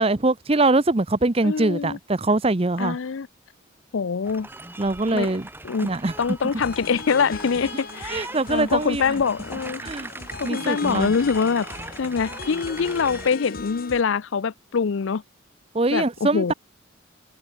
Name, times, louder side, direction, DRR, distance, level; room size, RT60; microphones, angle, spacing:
voice 1, 0.0-3.0 4.8-5.5 5.8-6.1 8.1-9.0 9.8-10.1 10.4-11.1 15.7-16.5, right 2 dB, 30° right, 0.7 m, -22 dB
voice 2, 1.4-2.0 2.8-3.3 3.9-4.5 5.1-5.3 5.6-5.9 6.2-9.8 10.4-11.7 12.0-15.2 15.9-16.5, left 5 dB, 70° left, 0.5 m, -24 dB
sound 1, 4.2-13.3, right 2 dB, 10° right, 2.6 m, -40 dB
sound 2, 6.6-14.0, left 3 dB, 45° left, 2.9 m, -38 dB
head